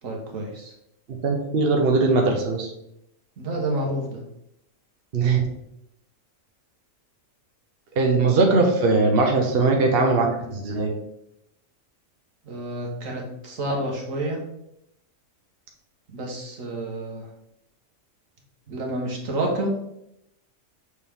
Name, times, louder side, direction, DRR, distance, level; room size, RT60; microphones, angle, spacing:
voice 1, 0.0-0.7 3.4-4.2 12.4-14.4 16.1-17.3 18.7-19.7, right 1 dB, 75° right, 0 dB, 1.7 m, -29 dB
voice 2, 1.2-2.7 5.1-5.5 8.0-10.9, right 3 dB, 50° right, 1 dB, 1.0 m, -20 dB
6.4 x 4.2 x 3.6 m, 0.80 s
omnidirectional pair, 1.4 m